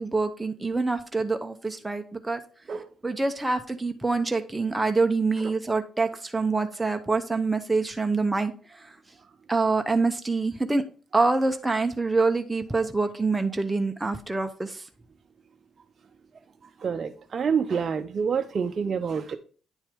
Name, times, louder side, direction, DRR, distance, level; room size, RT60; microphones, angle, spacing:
voice 1, 0.0-2.4 3.0-8.9 9.5-10.8 11.1-14.9, right 3 dB, 15° right, 0.7 m, -26 dB
voice 2, 16.6-19.4, right 6 dB, 45° right, 0.5 m, -27 dB
9.8 x 4.5 x 3.5 m
cardioid pair, 90°, 0 cm